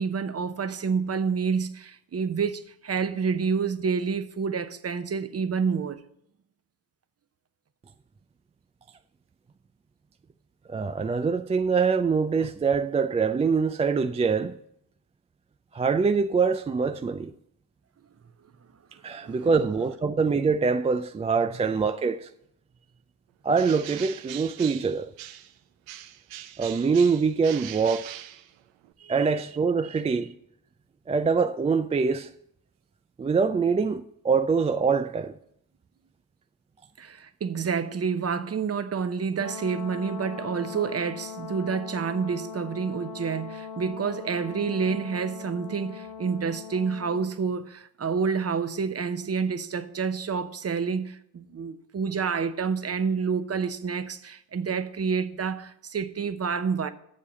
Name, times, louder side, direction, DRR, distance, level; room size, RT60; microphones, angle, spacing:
voice 1, 0.0-6.0 19.0-19.5 29.0-29.3 29.8-30.0 37.0-56.9, right 5 dB, 30° right, 0.9 m, -28 dB
voice 2, 10.7-14.6 15.7-17.3 19.0-22.3 23.4-25.1 26.6-28.2 29.1-30.3 31.1-32.3 33.2-35.4, right 5 dB, 15° right, 0.3 m, -24 dB
Bird, 23.5-25.6 25.9-28.9, right 12 dB, 75° right, 0.8 m, -42 dB
Brass instrument, 39.4-47.3, left 6 dB, 55° left, 1.4 m, -40 dB
7.6 x 6.9 x 7.3 m
supercardioid pair, 60°, 46 cm